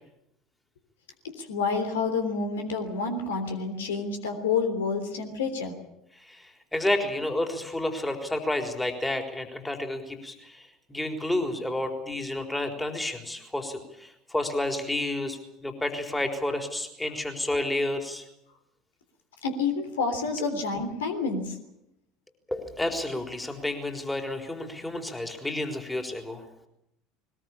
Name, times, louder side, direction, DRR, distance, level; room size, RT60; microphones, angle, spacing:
voice 1, 1.4-5.7 19.4-21.6, left 4 dB, 70° left, 6 dB, 3.4 m, -29 dB
voice 2, 6.7-10.6 10.9-18.2 22.5-26.4, left 1 dB, 10° left, 4 dB, 4.0 m, -30 dB
21.5 x 20.5 x 8.7 m, 0.81 s
figure-of-eight pair, 70°, 0 cm